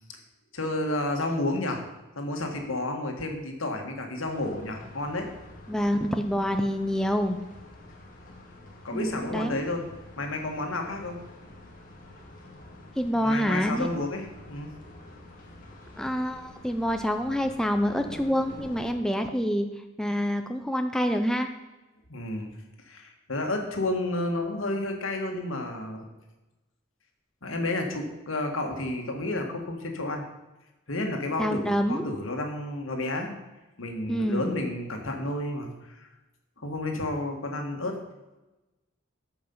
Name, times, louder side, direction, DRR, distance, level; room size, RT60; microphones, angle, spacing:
voice 1, 0.5-1.8 2.2-5.3 8.8-9.8 10.2-11.2 13.2-14.7 22.1-22.5 22.9-26.1 27.4-30.2 30.9-33.3 33.8-36.1 36.6-38.0, left 2 dB, 85° left, 3 dB, 1.8 m, -31 dB
sound 1, 4.2-18.9, left 1 dB, 40° left, 2.0 m, -48 dB
voice 2, 5.7-7.4 8.9-9.7 13.0-13.9 16.0-19.7 20.0-21.5 31.4-32.1 34.1-34.5, equal, 5° left, 5 dB, 0.5 m, -27 dB
13.5 x 5.6 x 5.5 m, 1.1 s
head